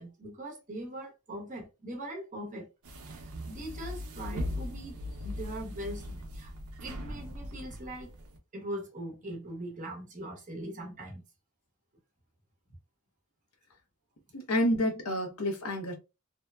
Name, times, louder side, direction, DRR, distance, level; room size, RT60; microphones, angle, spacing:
voice 1, 0.0-2.7 3.1-6.5 6.8-8.1 8.5-11.2, right 1 dB, 35° right, 0.8 m, -41 dB
sound 1, 2.8-8.4, left 1 dB, 85° right, 0.6 m, -39 dB
voice 2, 14.3-15.9, equal, 80° left, 0.8 m, -29 dB
2.7 x 2.2 x 2.2 m
head